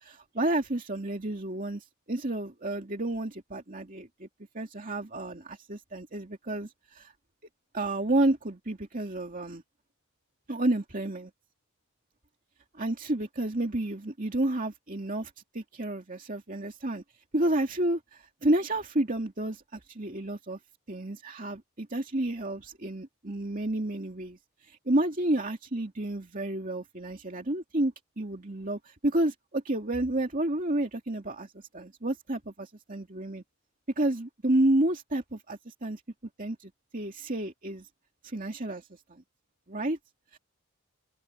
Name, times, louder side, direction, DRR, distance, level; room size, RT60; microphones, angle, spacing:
voice 1, 0.0-4.3 4.5-7.1 7.7-9.6 10.5-11.3 12.8-17.0 17.3-20.6 20.9-24.4 24.7-33.4 34.0-36.0 36.4-37.9 38.2-38.8 39.1-39.2 39.7-40.0 40.3-40.4, right 1 dB, 40° right, 2.5 m, -30 dB
head